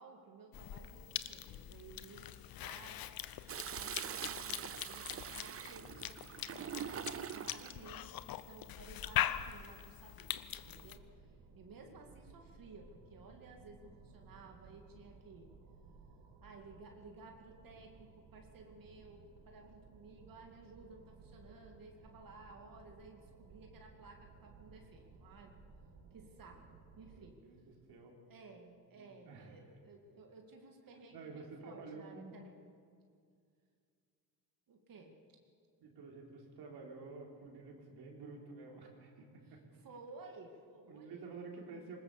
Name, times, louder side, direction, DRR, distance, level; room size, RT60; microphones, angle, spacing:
voice 1, 0.0-2.3 2.6-3.1 3.8-11.0 11.5-15.5 16.4-25.6 26.1-26.6 27.0-27.4 28.3-32.7 34.7-35.1 39.4-41.3, right 3 dB, 60° right, 2 dB, 2.5 m, -56 dB
Cough / Chewing mastication, 0.5-11.0, left 11 dB, 65° left, 0.9 m, -42 dB
Toilet flush, 3.5-7.8 9.2-9.7, right 8 dB, 35° right, 0.6 m, -44 dB
sound 1, 10.4-27.2, right 4 dB, 90° right, 2.4 m, -59 dB
voice 2, 27.1-27.6 27.9-28.2 28.9-29.5 31.1-32.3 35.8-39.6 40.9-42.0, right 4 dB, 75° right, 0 dB, 3.9 m, -50 dB
20.0 x 20.0 x 6.9 m, 2.3 s
cardioid pair, 90°, 39 cm